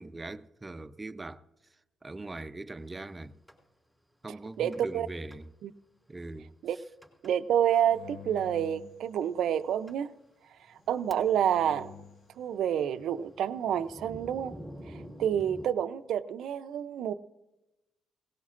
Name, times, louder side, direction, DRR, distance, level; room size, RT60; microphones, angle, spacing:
voice 1, 0.0-1.4 2.0-3.4 4.2-5.5 6.1-6.5, right 2 dB, 20° right, 0.6 m, -41 dB
Thunder, 3.5-3.6 4.7-5.0 5.3-5.4 6.0-6.1 7.0-7.3 7.7-7.9 8.8-8.9 9.5-9.6 9.9-10.0 10.6-11.5 11.8-15.7, equal, 5° left, 3.9 m, -48 dB
voice 2, 4.6-5.1 5.6-5.7 6.6-6.8 7.2-10.1 10.9-11.9 12.4-14.5 14.9-17.1, right 9 dB, 75° right, 0.5 m, -28 dB
sound 1, 7.9-9.8 10.8-12.3, left 6 dB, 70° left, 1.1 m, -50 dB
18.5 x 17.5 x 2.5 m
cardioid pair, 90°, 0 cm